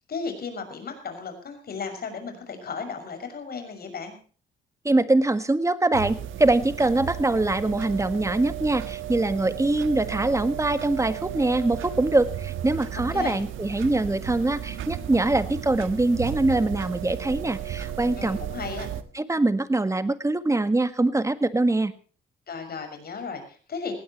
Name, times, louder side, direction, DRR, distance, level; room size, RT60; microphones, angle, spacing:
voice 1, 0.1-4.2 12.9-13.4 18.2-18.9 22.5-23.9, left 5 dB, 50° left, 6 dB, 6.4 m, -35 dB
voice 2, 4.8-18.4 19.1-21.9, right 2 dB, 15° right, 12 dB, 1.6 m, -23 dB
sound 1, 5.9-19.0, right 10 dB, 85° right, 1.4 m, -34 dB
19.5 x 16.5 x 3.1 m, 0.40 s
cardioid pair, 90°, 20 cm